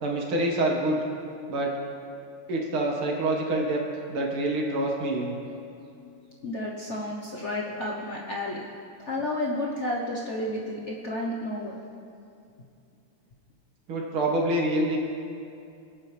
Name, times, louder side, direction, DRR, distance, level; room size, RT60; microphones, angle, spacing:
voice 1, 0.0-1.0 1.5-1.7 2.5-3.8 4.1-5.4 13.9-15.0, right 1 dB, 70° right, -1 dB, 2.5 m, -26 dB
voice 2, 6.4-8.6 9.1-11.8, left 1 dB, 45° left, -3 dB, 1.0 m, -31 dB
25.0 x 8.9 x 3.3 m, 2.5 s
omnidirectional pair, 2.4 m